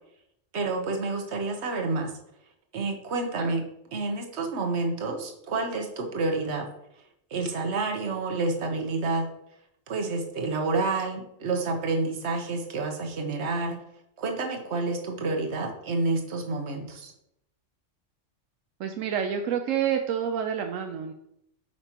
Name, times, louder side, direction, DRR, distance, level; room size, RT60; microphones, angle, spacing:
voice 1, 0.5-2.1 2.7-3.6 3.9-6.7 7.3-9.3 9.9-13.8 14.2-17.1, right 3 dB, 60° right, 3 dB, 1.3 m, -29 dB
voice 2, 18.8-21.1, right 8 dB, 85° right, 5 dB, 1.0 m, -28 dB
8.6 x 5.2 x 2.9 m, 0.78 s
omnidirectional pair, 1.3 m